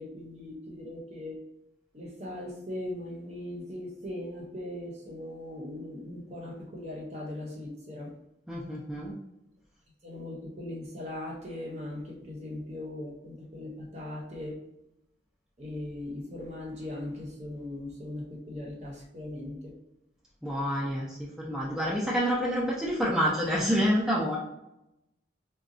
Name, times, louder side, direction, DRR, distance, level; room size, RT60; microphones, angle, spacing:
voice 1, 0.0-1.4 1.9-8.1 10.0-14.5 15.6-19.7, left 1 dB, 35° right, -2 dB, 0.7 m, -39 dB
voice 2, 8.5-9.2 20.4-24.4, equal, 5° right, -7 dB, 0.4 m, -28 dB
3.9 x 2.3 x 2.5 m, 0.87 s
head